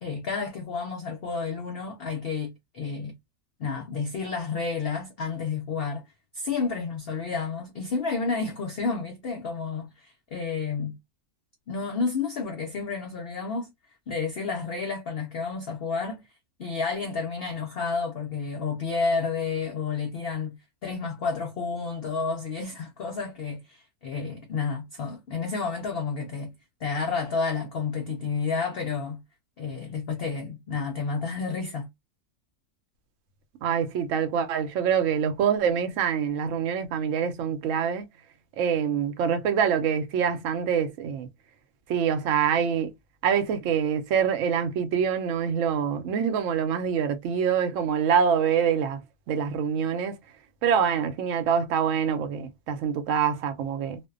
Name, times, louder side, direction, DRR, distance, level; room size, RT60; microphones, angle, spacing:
voice 1, 0.0-3.1 3.6-6.0 6.3-11.0 11.7-13.7 14.1-16.2 16.6-26.5 26.8-29.2 29.6-31.9, left 4 dB, 85° left, 0.5 m, -30 dB
voice 2, 33.6-38.1 38.6-41.3 41.9-42.9 43.2-49.0 49.3-50.1 50.6-54.0, right 7 dB, 70° right, 0.8 m, -25 dB
2.5 x 2.1 x 2.3 m
omnidirectional pair, 1.6 m